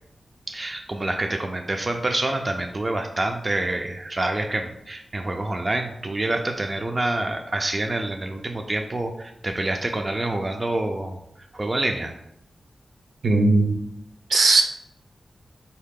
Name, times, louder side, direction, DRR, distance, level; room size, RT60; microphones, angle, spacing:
voice 1, 0.5-11.2 11.5-12.1, right 2 dB, 30° right, 3 dB, 0.3 m, -27 dB
voice 2, 13.2-13.7 14.3-14.6, right 2 dB, 70° right, 4 dB, 0.6 m, -17 dB
4.0 x 2.8 x 3.6 m, 0.79 s
wide cardioid pair, 110°, 0 cm